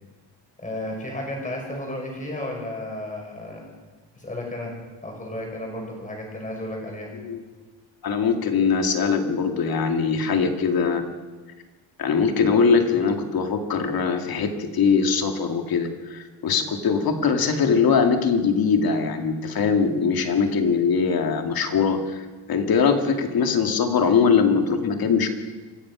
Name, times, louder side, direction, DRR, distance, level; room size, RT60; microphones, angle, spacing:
voice 1, 0.6-3.7 4.2-4.7 5.0-7.1 10.3-10.6, left 1 dB, 15° left, 0 dB, 5.8 m, -33 dB
voice 2, 8.0-11.1 12.0-22.2 22.5-25.3, left 5 dB, 50° left, 6 dB, 2.2 m, -21 dB
27.0 x 15.5 x 6.2 m, 1.4 s
cardioid pair, 175°, 46 cm